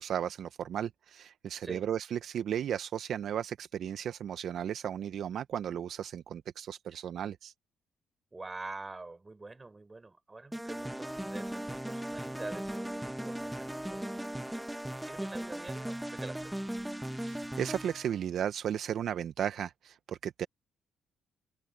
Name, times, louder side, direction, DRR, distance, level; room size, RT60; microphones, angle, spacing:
voice 1, 0.0-7.5 17.2-20.5, right 9 dB, 65° right, 0.8 m, -35 dB
voice 2, 8.3-14.2 14.4-14.6 15.0-16.6, right 3 dB, 20° right, 6.6 m, -46 dB
sound 1, 10.5-18.2, right 1 dB, 5° right, 1.4 m, -38 dB
cardioid pair, 90°, 0 cm